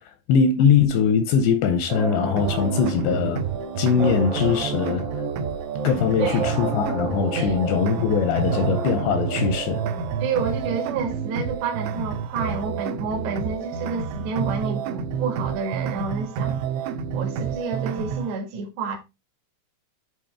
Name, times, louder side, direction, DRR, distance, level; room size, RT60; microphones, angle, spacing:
voice 1, 0.3-3.4 3.8-5.0 5.8-9.8, left 6 dB, 80° left, 2.6 m, -21 dB
sound 1, 1.9-11.3, right 3 dB, 50° right, 1.8 m, -32 dB
sound 2, 2.4-18.4, right 7 dB, 85° right, 3.2 m, -29 dB
voice 2, 10.2-16.6 17.1-19.0, right 4 dB, 65° right, 3.9 m, -29 dB
10.5 x 4.1 x 3.5 m
omnidirectional pair, 5.6 m